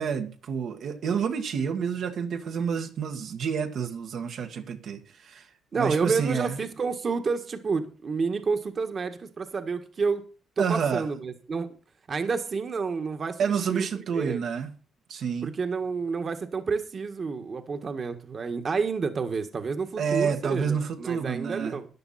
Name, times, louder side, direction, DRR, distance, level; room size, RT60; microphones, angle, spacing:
voice 1, 0.0-6.6 10.6-11.0 13.4-14.8 15.1-15.5 20.0-21.8, right 6 dB, 65° right, 1.7 m, -29 dB
voice 2, 5.7-10.2 10.6-11.7 12.1-14.4 15.4-21.9, right 5 dB, 40° right, 1.7 m, -29 dB
14.0 x 10.0 x 4.3 m
cardioid pair, 90°, 0 cm